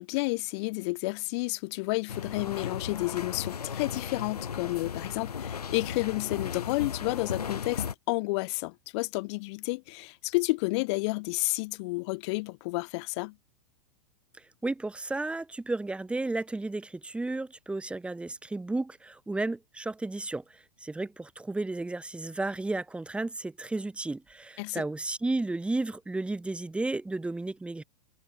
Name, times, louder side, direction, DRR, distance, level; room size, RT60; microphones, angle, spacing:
voice 1, 0.0-13.3 24.6-24.8, left 26 dB, 45° left, 0.6 m, -31 dB
sound 1, 2.1-7.9, left 7 dB, 90° left, 0.7 m, -36 dB
voice 2, 14.6-27.8, right 2 dB, 5° right, 1.0 m, -33 dB
hypercardioid pair, 105°, 19 cm